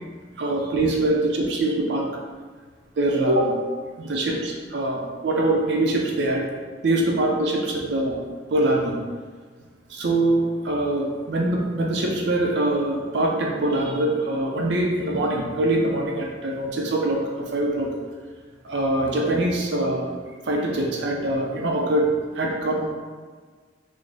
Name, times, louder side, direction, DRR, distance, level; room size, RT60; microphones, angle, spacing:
voice 1, 0.4-2.1 3.0-3.6 4.0-6.4 6.8-8.2 8.5-8.9 9.9-17.9 18.6-20.1 20.4-22.1 22.3-22.9, right 1 dB, 65° right, -1 dB, 0.4 m, -23 dB
3.8 x 2.0 x 3.3 m, 1.5 s
head